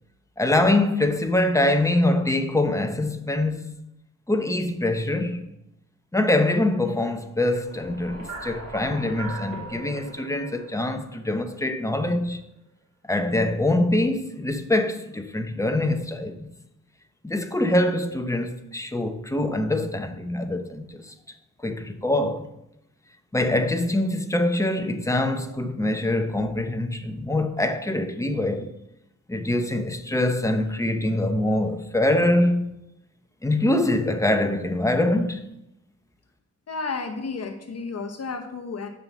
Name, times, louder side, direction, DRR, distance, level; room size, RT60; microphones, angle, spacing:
voice 1, 0.4-3.8 4.3-5.5 6.1-12.4 13.1-16.5 17.2-21.1 21.6-22.5 23.3-28.7 29.3-32.7 33.4-35.5, left 1 dB, 10° left, 0.7 m, -24 dB
sound 1, 7.5-11.8, right 2 dB, 90° right, 3.1 m, -39 dB
voice 2, 36.7-38.9, left 4 dB, 55° left, 1.0 m, -32 dB
7.6 x 5.7 x 7.2 m
wide cardioid pair, 180°, 30 cm